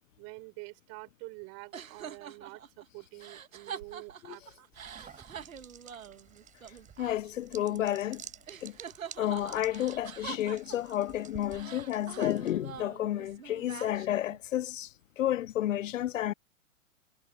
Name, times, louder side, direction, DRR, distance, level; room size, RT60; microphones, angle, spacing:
voice 1, 0.2-4.4, right 31 dB, 40° right, 6.4 m, -47 dB
sound 1, 1.7-8.2 8.5-11.1 11.5-14.4, right 8 dB, 85° right, 1.7 m, -45 dB
sound 2, 4.7-12.8, right 9 dB, 20° right, 4.2 m, -52 dB
voice 2, 7.0-8.2 8.6-8.8 9.2-14.9 15.2-16.3, left 12 dB, 70° left, 0.7 m, -31 dB
hypercardioid pair, 120°, 40 cm